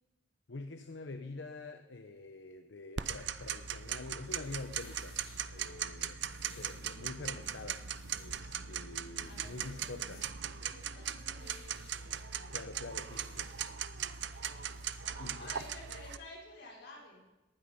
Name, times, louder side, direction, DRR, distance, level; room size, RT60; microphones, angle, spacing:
voice 1, 0.5-5.2 5.5-7.8 8.2-10.3 12.5-13.5 15.2-15.5, left 3 dB, 85° left, 8 dB, 0.8 m, -46 dB
Tick-tock, 3.0-16.2, right 8 dB, 75° right, 0.7 m, -39 dB
sound 1, 4.4-15.0, left 3 dB, 35° left, 5.5 m, -62 dB
voice 2, 9.3-9.8 10.6-12.7 13.1-13.6 15.0-17.2, left 2 dB, 65° left, -3 dB, 5.8 m, -53 dB
18.5 x 12.0 x 5.6 m, 1.0 s
head